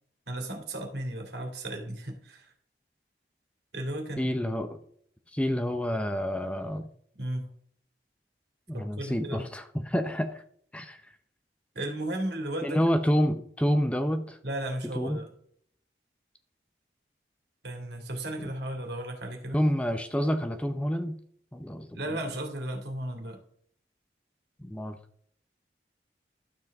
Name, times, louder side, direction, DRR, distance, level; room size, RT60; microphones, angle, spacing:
voice 1, 0.3-2.5 3.7-4.3 7.1-7.5 8.7-9.5 11.7-12.8 14.4-15.3 17.6-19.6 21.9-23.4, right 1 dB, 75° right, 3 dB, 2.4 m, -35 dB
voice 2, 4.2-4.8 5.3-6.9 8.7-10.4 10.7-11.0 12.6-14.4 14.9-15.2 18.4-18.5 19.5-21.2 21.5-22.2 24.6-25.0, equal, 5° left, 7 dB, 0.6 m, -28 dB
12.0 x 7.5 x 3.6 m, 0.63 s
head